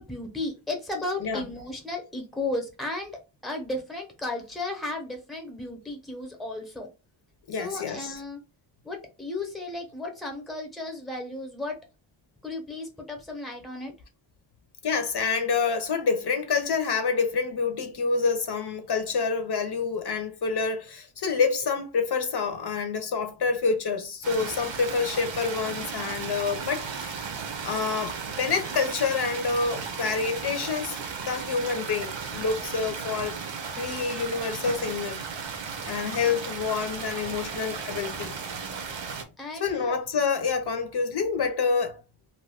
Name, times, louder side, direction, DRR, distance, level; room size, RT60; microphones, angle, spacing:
voice 1, 0.0-6.9 7.5-8.4 8.8-11.8 12.4-13.9 39.4-40.0, left 2 dB, ahead, 0.7 m, -34 dB
voice 2, 1.2-1.5 7.5-8.2 14.8-27.2 27.6-33.4 33.8-35.2 35.9-38.3 39.5-42.0, left 5 dB, 60° left, 0.6 m, -27 dB
sound 1, 24.2-39.2, right 5 dB, 75° right, 0.7 m, -35 dB
2.6 x 2.3 x 3.5 m
wide cardioid pair, 140°, 46 cm